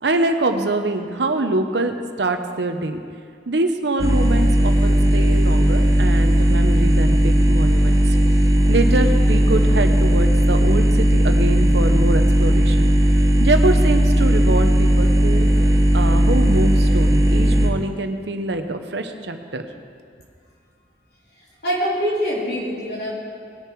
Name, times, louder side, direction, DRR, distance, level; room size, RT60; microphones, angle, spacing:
voice 1, 0.0-3.0 3.5-8.2 8.7-12.9 13.4-15.5 15.9-19.7, right 2 dB, 80° right, 6 dB, 0.9 m, -24 dB
sound 1, 4.0-17.7, equal, 20° right, 0.9 m, -16 dB
voice 2, 21.6-23.1, equal, 70° left, -5 dB, 3.3 m, -24 dB
20.0 x 6.8 x 4.7 m, 2.3 s
head